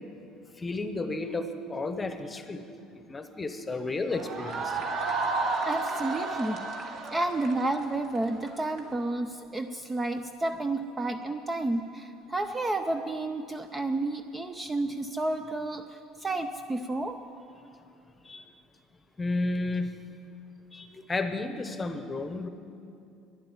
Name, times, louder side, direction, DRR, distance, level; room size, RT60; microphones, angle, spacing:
voice 1, 0.6-2.7 3.1-4.8 18.2-18.5 19.2-19.9 20.7-22.5, left 2 dB, 15° left, 9 dB, 0.9 m, -32 dB
sound 1, 4.1-8.8, right 3 dB, 45° right, 2.0 m, -32 dB
voice 2, 5.6-6.6 7.1-17.2, right 2 dB, 15° right, 7 dB, 0.5 m, -31 dB
12.0 x 11.0 x 9.7 m, 2.7 s
cardioid pair, 145°, 0 cm